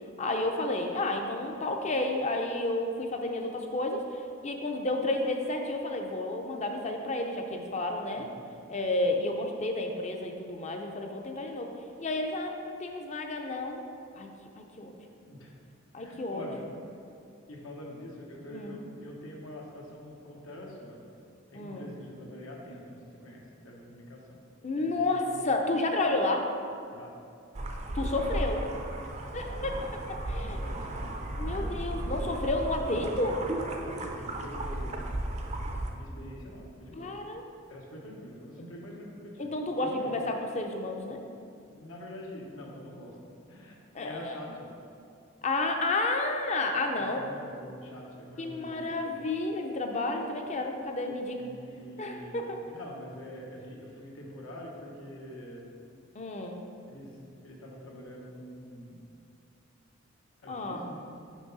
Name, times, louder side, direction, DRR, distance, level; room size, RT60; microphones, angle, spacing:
voice 1, 0.2-8.3 8.7-11.7 12.0-13.9 14.2-14.3 14.6-14.9 15.9-16.5 18.5-18.8 21.5-21.9 24.6-26.4 27.9-28.6 29.3-29.8 30.1-30.6 31.4-33.4 37.0-37.4 39.4-41.2 43.9-44.4 45.4-47.2 48.4-51.4 52.0-52.6 56.1-56.6 60.5-60.9, left 2 dB, 35° left, 3 dB, 0.5 m, -31 dB
voice 2, 16.0-16.6 17.5-21.0 21.5-24.4 24.8-25.4 26.9-27.1 28.2-28.4 29.3-29.9 30.3-32.4 32.9-33.1 33.5-35.0 35.9-37.1 37.7-39.5 39.8-40.2 41.7-43.2 43.5-44.7 46.9-49.3 51.4-55.6 56.9-59.0 60.4-61.0, equal, 85° left, -2 dB, 1.1 m, -45 dB
sound 1, 27.5-35.9, right 1 dB, 35° right, 0.5 m, -35 dB
6.1 x 5.5 x 4.0 m, 2.5 s
head